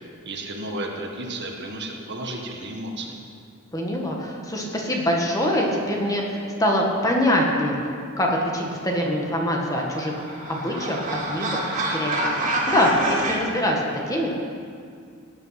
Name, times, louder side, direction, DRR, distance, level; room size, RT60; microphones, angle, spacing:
voice 1, 0.2-3.2, right 1 dB, 55° right, 1 dB, 1.6 m, -33 dB
voice 2, 3.7-7.8 8.2-10.2 10.5-11.0 11.3-12.1 12.7-12.9 13.3-13.8 14.1-14.3, left 1 dB, 15° left, -1 dB, 1.8 m, -24 dB
sound 1, 9.5-13.4, right 1 dB, 40° right, 2.7 m, -27 dB
17.0 x 9.0 x 6.0 m, 2.3 s
head